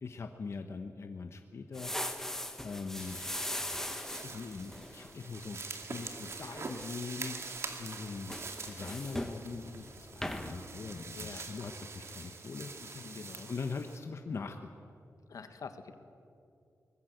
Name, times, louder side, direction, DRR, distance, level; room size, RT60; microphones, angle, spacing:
voice 1, 0.0-1.9 2.6-3.2 4.2-5.6 5.9-7.4 7.8-8.4 8.7-12.7 13.5-14.9, left 4 dB, 50° left, 5 dB, 1.1 m, -41 dB
sound 1, 1.7-5.5 5.8-6.1 6.6-7.6 7.8-9.4 9.8-10.0 10.2-10.6, left 1 dB, 5° left, 1.4 m, -40 dB
sound 2, 3.0-14.0, right 4 dB, 50° right, 2.2 m, -45 dB
voice 2, 11.1-11.5 12.8-13.5 15.3-16.0, left 5 dB, 70° left, 8 dB, 1.7 m, -46 dB
24.0 x 20.0 x 8.0 m, 2.5 s
wide cardioid pair, 175°, 6 cm